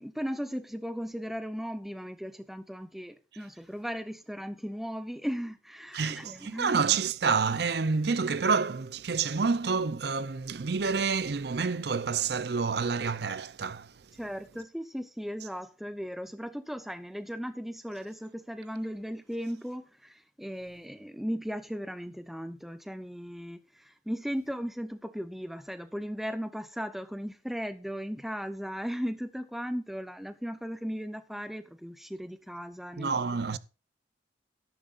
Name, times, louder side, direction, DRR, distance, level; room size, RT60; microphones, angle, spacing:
voice 1, 0.0-6.8 14.2-33.2 33.5-33.6, equal, ahead, 0.7 m, -37 dB
voice 2, 5.9-14.0 33.0-33.6, right 5 dB, 60° right, 0.6 m, -28 dB
12.5 x 11.5 x 2.5 m
head